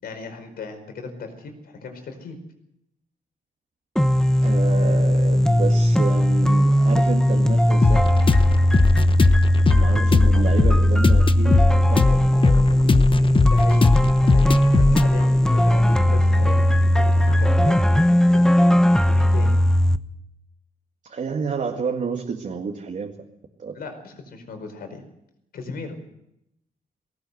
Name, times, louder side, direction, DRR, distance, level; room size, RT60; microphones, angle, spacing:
voice 1, 0.0-2.4 13.5-13.8 14.2-17.8 18.3-18.7 19.1-19.6 23.7-25.0 25.5-26.0, left 4 dB, 85° left, 6 dB, 4.9 m, -37 dB
sound 1, 4.0-20.0, equal, 5° left, 1.0 m, -18 dB
voice 2, 4.4-8.1 9.7-13.5 21.1-23.1 23.6-23.8, right 5 dB, 55° right, 1 dB, 2.3 m, -30 dB
sound 2, 7.8-17.5, left 4 dB, 35° left, 0.9 m, -21 dB
20.0 x 18.0 x 8.0 m, 0.81 s
cardioid pair, 105°, 15 cm